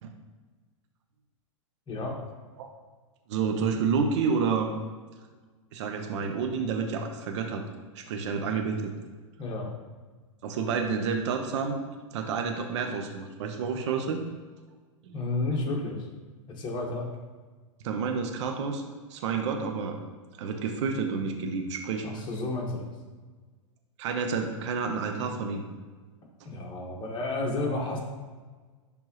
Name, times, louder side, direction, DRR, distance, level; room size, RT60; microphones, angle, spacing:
voice 1, 1.9-2.2 9.4-9.7 15.1-16.0 16.6-17.1 22.0-22.9 26.4-28.0, left 2 dB, 25° left, -1 dB, 1.6 m, -31 dB
voice 2, 3.3-4.7 5.7-7.6 7.9-8.9 10.4-11.8 12.1-14.2 15.0-15.2 17.8-18.8 19.1-20.0 20.4-22.1 24.0-25.6, right 5 dB, 60° right, 4 dB, 0.9 m, -29 dB
10.5 x 3.6 x 3.1 m, 1.4 s
hypercardioid pair, 115°, 17 cm